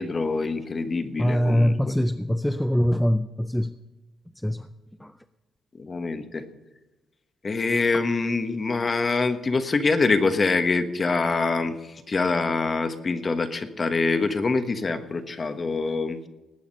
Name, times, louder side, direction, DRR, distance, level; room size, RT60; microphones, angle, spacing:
voice 1, 0.0-2.2 5.8-6.4 7.4-16.3, left 3 dB, 30° left, 9 dB, 1.3 m, -25 dB
voice 2, 1.2-3.7 4.4-4.7 5.0-5.1, equal, 5° left, 11 dB, 0.4 m, -23 dB
19.5 x 8.4 x 5.5 m, 1.1 s
cardioid pair, 140°, 0 cm